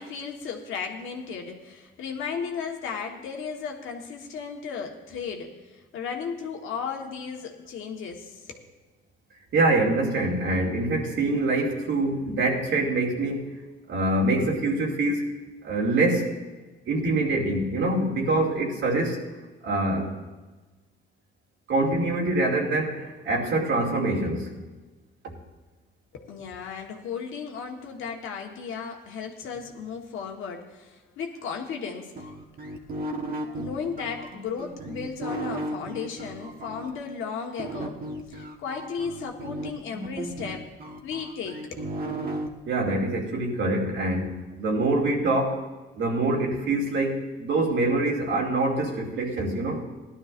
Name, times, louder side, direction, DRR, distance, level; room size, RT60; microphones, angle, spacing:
voice 1, 0.0-8.7 26.1-32.3 33.6-38.0 38.3-40.7 41.0-41.9, left 6 dB, 80° left, 2 dB, 1.4 m, -35 dB
voice 2, 9.5-13.5 13.9-15.4 15.6-16.4 16.9-19.2 19.6-20.2 21.7-24.5 42.7-45.6 46.0-49.8, right 2 dB, 70° right, -2 dB, 2.6 m, -25 dB
sound 1, 32.2-36.9 37.6-42.5, right 1 dB, 45° right, 1.3 m, -35 dB
17.5 x 11.5 x 2.6 m, 1.2 s
cardioid pair, 90°, 20 cm